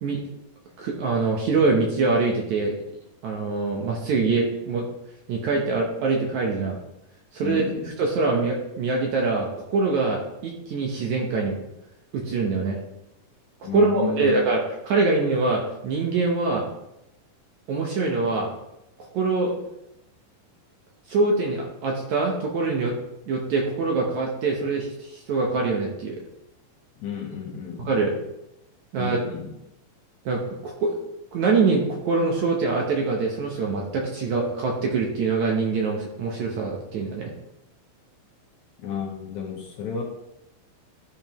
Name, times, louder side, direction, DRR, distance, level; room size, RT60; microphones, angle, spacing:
voice 1, 0.8-2.8 3.2-4.9 5.3-6.8 7.3-11.5 12.1-12.8 13.7-16.6 17.7-18.5 19.0-19.5 21.1-22.9 23.3-26.2 27.8-28.2 28.9-29.2 30.3-31.0 31.3-37.3, right 3 dB, 65° right, -1 dB, 2.0 m, -24 dB
voice 2, 7.4-7.9 13.6-14.3 27.0-27.9 29.0-29.5 38.8-40.0, left 6 dB, 65° left, -2 dB, 2.2 m, -31 dB
13.0 x 5.1 x 3.0 m, 0.86 s
omnidirectional pair, 4.2 m